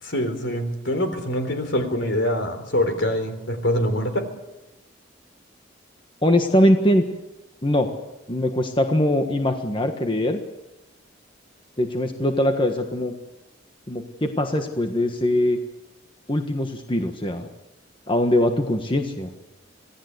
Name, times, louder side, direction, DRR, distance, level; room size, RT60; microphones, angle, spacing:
voice 1, 0.0-4.2, left 1 dB, 70° left, 7 dB, 4.0 m, -24 dB
voice 2, 6.2-7.0 7.6-7.9 8.3-10.4 11.8-13.1 13.9-15.6 16.3-17.5 18.1-19.3, left 1 dB, 25° left, 5 dB, 1.5 m, -22 dB
26.5 x 18.0 x 8.2 m, 0.97 s
head